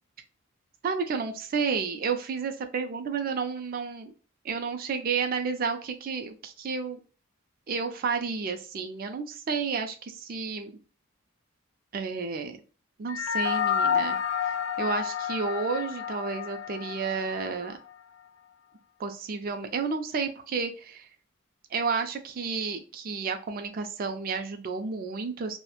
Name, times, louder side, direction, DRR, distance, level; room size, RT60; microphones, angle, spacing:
voice 1, 0.8-4.1 4.4-7.0 7.7-10.7 11.9-12.6 13.0-14.2 14.4-17.8 19.0-21.1 21.7-25.6, right 5 dB, 45° right, 6 dB, 0.4 m, -31 dB
sound 1, 13.1-17.8, left 7 dB, 60° left, 0.3 m, -30 dB
2.9 x 2.1 x 2.2 m, 0.38 s
head